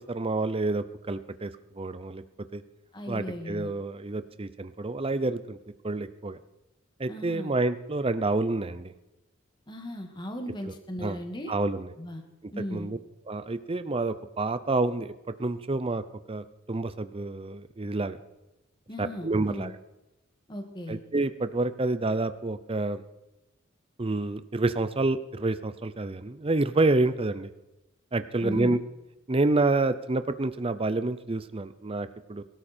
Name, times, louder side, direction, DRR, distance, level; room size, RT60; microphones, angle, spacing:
voice 1, 0.1-2.2 2.5-2.6 3.1-5.6 5.8-6.4 7.0-8.9 10.7-11.2 11.5-11.9 12.7-13.0 13.3-15.1 15.4-18.2 19.0-19.8 20.9-23.0 24.0-27.5 28.1-28.8 29.3-32.4, right 2 dB, 25° right, 12 dB, 0.6 m, -28 dB
voice 2, 2.9-3.7 7.1-7.5 9.7-11.6 12.0-12.3 12.5-12.9 18.9-19.7 20.5-21.0 28.4-28.8, left 1 dB, 20° left, 4 dB, 2.0 m, -37 dB
22.0 x 13.5 x 4.4 m, 0.98 s
head